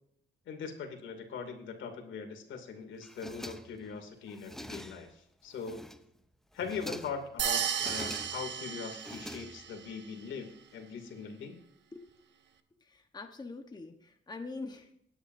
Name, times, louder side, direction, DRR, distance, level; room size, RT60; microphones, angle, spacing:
voice 1, 0.5-5.1 5.4-5.8 6.5-11.5, left 6 dB, 75° left, 4 dB, 2.8 m, -41 dB
sound 1, 3.0-3.9 4.3-5.2 5.5-6.2 6.5-7.3 7.7-8.5 8.9-9.9, equal, ahead, 0.7 m, -45 dB
sound 2, 7.4-9.7, right 8 dB, 65° right, 1.1 m, -34 dB
voice 2, 12.8-14.9, left 3 dB, 20° left, 4 dB, 1.2 m, -44 dB
20.0 x 10.0 x 2.7 m, 0.71 s
cardioid pair, 90°, 20 cm